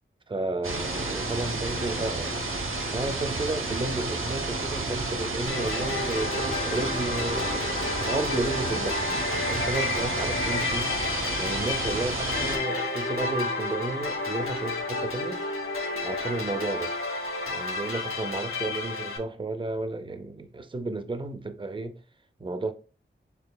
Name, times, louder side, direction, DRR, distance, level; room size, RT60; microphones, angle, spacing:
voice 1, 0.3-2.3 2.9-9.1 9.5-10.9 11.4-15.4 16.0-16.9 17.5-22.0 22.4-22.7, right 2 dB, 25° right, 0.5 m, -32 dB
sound 1, 0.6-12.6, right 2 dB, 75° right, 0.9 m, -31 dB
sound 2, 5.5-19.2, left 3 dB, 85° left, 1.2 m, -31 dB
6.6 x 2.8 x 2.2 m
wide cardioid pair, 60°, 21 cm